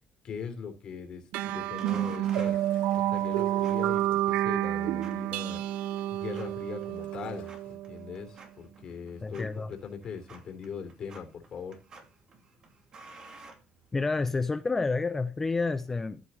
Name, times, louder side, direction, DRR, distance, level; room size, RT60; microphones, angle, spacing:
voice 1, 0.2-2.6 2.9-5.6 6.1-11.8, left 6 dB, 40° left, 3.2 m, -41 dB
sound 1, 1.3-8.2, right 13 dB, 80° right, 0.5 m, -29 dB
sound 2, 1.8-14.3, right 3 dB, 35° right, 2.5 m, -53 dB
Toilet flush, 2.2-7.7, left 10 dB, 70° left, 3.2 m, -57 dB
voice 2, 9.2-9.7 13.9-16.2, left 3 dB, 15° left, 0.6 m, -29 dB
14.0 x 7.9 x 4.1 m
cardioid pair, 150°, 2 cm